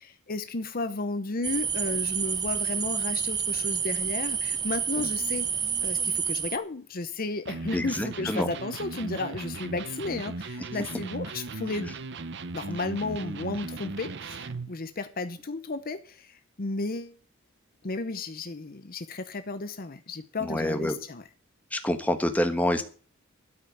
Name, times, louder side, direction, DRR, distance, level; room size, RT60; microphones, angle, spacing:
voice 1, 0.0-5.5 5.8-11.9 12.5-17.1 17.8-21.2, left 3 dB, 45° left, 0.8 m, -33 dB
sound 1, 1.4-6.6, right 7 dB, 20° right, 0.7 m, -29 dB
Electric guitar, 7.5-14.8, right 3 dB, 55° right, 0.8 m, -37 dB
voice 2, 7.7-8.5 10.7-10.8 20.4-21.0 21.7-22.8, left 1 dB, 5° left, 1.3 m, -27 dB
12.5 x 5.6 x 9.1 m
head